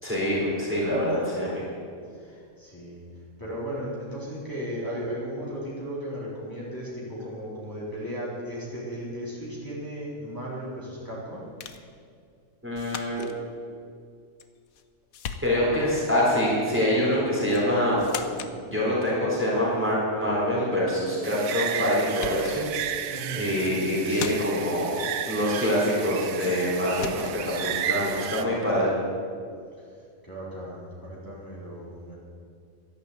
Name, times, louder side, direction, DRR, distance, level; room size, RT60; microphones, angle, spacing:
voice 1, 0.0-1.7 12.6-13.2 15.4-18.0 18.3-22.7 22.9-28.9, equal, 10° right, -6 dB, 3.9 m, -25 dB
voice 2, 2.1-11.4 20.5-20.6 23.1-23.4 29.8-32.1, equal, 15° left, -8 dB, 4.0 m, -36 dB
sound 1, 11.6-11.9 12.7-13.4 14.4-14.9 15.1-15.8 17.5-17.7 18.0-18.6 21.6-21.7 22.0-22.6 23.5-23.8 24.1-24.7 26.4-26.6 26.9-27.4, left 8 dB, 90° left, 1.3 m, -38 dB
sound 2, 21.2-28.4, right 10 dB, 80° right, 1.1 m, -33 dB
12.0 x 11.0 x 8.3 m, 2.3 s
omnidirectional pair, 1.4 m